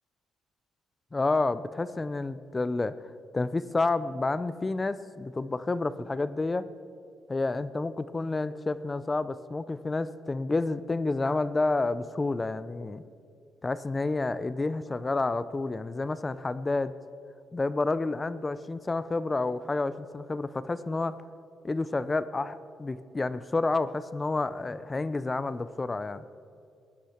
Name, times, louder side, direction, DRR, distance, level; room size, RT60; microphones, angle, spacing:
voice 1, 1.1-3.0 3.3-6.7 7.3-13.0 13.6-17.0 17.5-21.2 21.6-26.2, left 3 dB, 25° left, 15 dB, 0.6 m, -29 dB
20.5 x 9.2 x 5.8 m, 2.4 s
cardioid pair, 90°, 0 cm